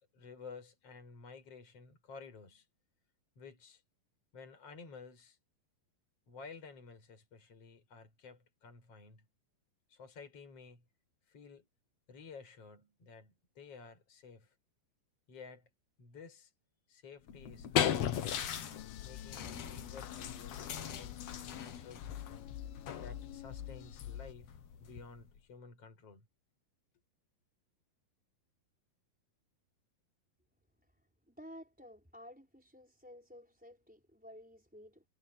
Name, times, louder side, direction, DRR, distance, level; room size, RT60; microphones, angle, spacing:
voice 1, 0.1-2.7 3.4-3.8 4.3-5.4 6.3-9.3 9.9-10.8 11.3-11.7 12.1-14.5 15.3-15.7 16.0-16.5 16.9-18.5 19.0-22.5 23.0-26.3, left 4 dB, 30° left, 7.0 m, -53 dB
sound 1, 17.3-25.4, left 9 dB, 65° left, 1.6 m, -38 dB
sound 2, 18.8-24.3, left 12 dB, 85° left, 3.5 m, -47 dB
voice 2, 31.3-35.0, equal, ahead, 4.6 m, -53 dB
omnidirectional pair, 5.2 m